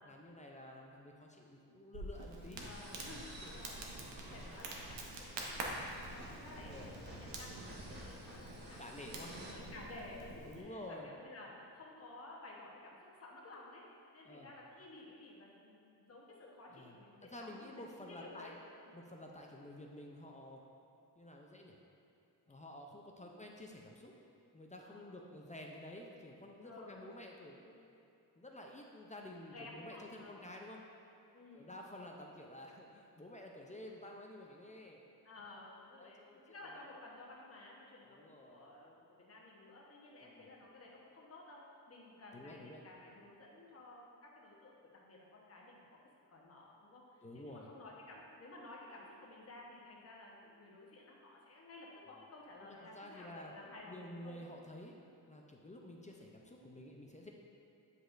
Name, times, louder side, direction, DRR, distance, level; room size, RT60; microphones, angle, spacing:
voice 1, 0.1-2.7 3.4-3.5 4.3-4.5 6.5-7.0 8.8-9.3 10.5-11.1 14.2-14.5 16.7-17.0 17.2-18.6 18.9-20.6 21.2-21.8 22.5-24.1 24.5-27.9 28.4-30.8 31.5-35.0 36.0-36.6 38.0-38.6 40.2-40.5 42.3-42.8 47.2-47.7 52.6-53.5 53.9-54.9 55.3-57.3, left 1 dB, 20° left, 0 dB, 0.4 m, -51 dB
Crackle, 1.9-10.6, right 2 dB, 75° right, 0.9 m, -47 dB
voice 2, 2.6-4.0 4.3-13.9 14.1-18.6 18.8-19.0 23.2-23.3 24.8-25.3 26.6-27.0 29.4-30.5 31.3-32.1 35.2-46.0 46.3-54.4 55.7-56.0, left 2 dB, 35° left, -3 dB, 1.0 m, -54 dB
sound 1, 2.7-9.5, right 1 dB, 25° right, 1.1 m, -53 dB
8.0 x 5.1 x 2.5 m, 2.8 s
cardioid pair, 115°, 43 cm